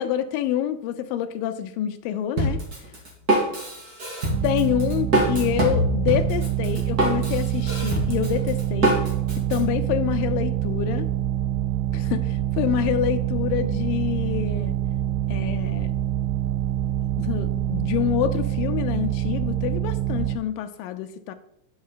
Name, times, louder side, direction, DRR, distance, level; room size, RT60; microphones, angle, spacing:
voice 1, 0.0-2.6 4.4-8.9 9.5-11.1 11.9-14.8 15.3-15.9 17.2-21.3, left 11 dB, 90° left, 9 dB, 2.4 m, -27 dB
Drum kit, 2.4-9.6, right 1 dB, 35° right, 1.8 m, -24 dB
sound 1, 4.3-20.4, right 12 dB, 85° right, 1.6 m, -26 dB
10.5 x 5.2 x 3.9 m, 0.73 s
omnidirectional pair, 3.9 m